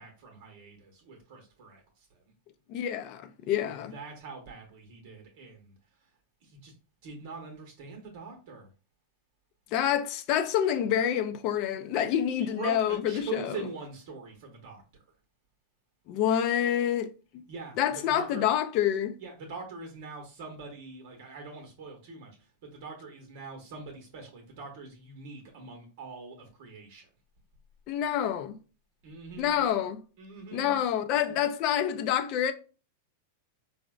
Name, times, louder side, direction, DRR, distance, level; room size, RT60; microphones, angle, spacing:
voice 1, 0.0-2.3 3.9-6.1 6.4-6.7 7.0-8.7 12.4-15.0 17.5-18.5 19.2-27.1 29.0-29.6 30.2-30.8, right 4 dB, 60° right, 0.8 m, -43 dB
voice 2, 2.7-3.9 9.7-13.4 16.1-17.1 17.8-19.1 27.9-28.6 29.4-30.0 30.5-32.5, left 10 dB, 45° left, 0.4 m, -27 dB
3.8 x 2.1 x 2.3 m
supercardioid pair, 135°, 0 cm